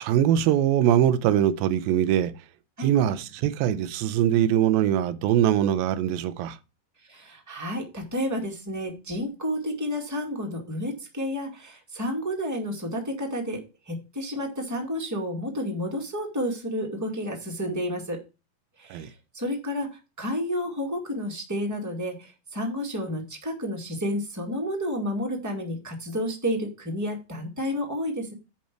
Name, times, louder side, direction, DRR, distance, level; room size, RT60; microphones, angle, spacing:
voice 1, 0.0-2.4 2.8-6.6 18.9-19.1, right 11 dB, 85° right, 2.4 m, -22 dB
voice 2, 7.1-18.2 18.8-28.3, equal, 10° right, 1.1 m, -31 dB
10.5 x 4.3 x 6.1 m
omnidirectional pair, 4.2 m